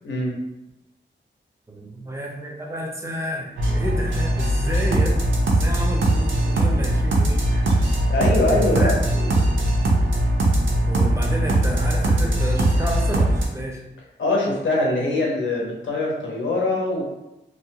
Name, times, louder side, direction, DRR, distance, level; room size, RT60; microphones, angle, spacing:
voice 1, 1.7-7.9 8.5-9.5 10.9-13.8, equal, 15° right, 0 dB, 0.5 m, -31 dB
sound 1, 3.6-13.5, right 1 dB, 90° right, 0.6 m, -20 dB
voice 2, 8.1-9.3 14.2-17.0, left 2 dB, 80° left, -3 dB, 0.7 m, -23 dB
2.3 x 2.2 x 2.8 m, 0.91 s
wide cardioid pair, 110°, 19 cm